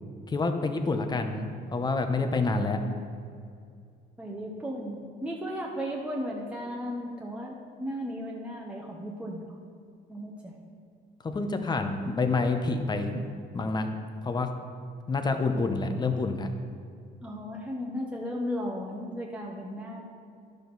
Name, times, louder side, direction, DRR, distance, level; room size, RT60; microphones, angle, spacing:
voice 1, 0.3-2.8 11.2-13.2 13.5-13.9 14.2-14.5 15.1-16.5, left 3 dB, 25° left, 6 dB, 0.8 m, -28 dB
voice 2, 2.6-3.0 4.2-9.6 10.1-10.6 17.2-20.0, equal, 5° right, -2 dB, 1.0 m, -35 dB
11.0 x 6.6 x 4.0 m, 2.3 s
cardioid pair, 110°, 17 cm